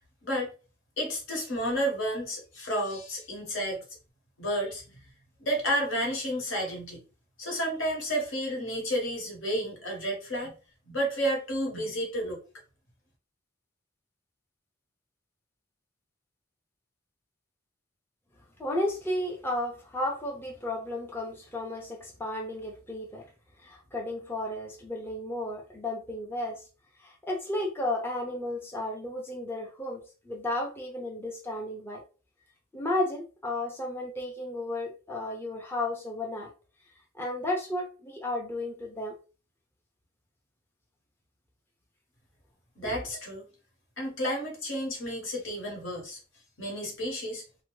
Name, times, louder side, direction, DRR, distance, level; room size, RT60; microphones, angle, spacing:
voice 1, 1.0-3.8 4.4-4.8 5.4-7.0 7.4-10.5 10.9-12.4 42.8-43.4 44.0-46.2 46.6-47.4, equal, 70° left, 1.1 m, -31 dB
voice 2, 18.6-23.2 23.6-26.6 27.0-30.0 30.3-32.0 32.7-36.5 37.2-39.1 42.8-42.9, left 1 dB, 10° left, 0.5 m, -33 dB
2.6 x 2.1 x 3.0 m
head